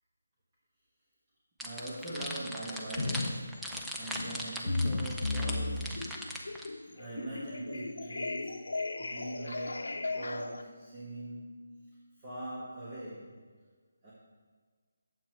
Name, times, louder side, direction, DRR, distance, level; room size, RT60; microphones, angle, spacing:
sound 1, 1.6-6.7, equal, ahead, 0.4 m, -39 dB
voice 1, 1.6-6.2 6.9-11.8 12.2-13.3 14.0-14.1, right 1 dB, 20° right, -9 dB, 1.4 m, -42 dB
sound 2, 3.0-3.4 3.7-10.6, left 3 dB, 80° left, 0.7 m, -35 dB
9.1 x 7.8 x 4.5 m, 1.6 s
hypercardioid pair, 175°, 0 cm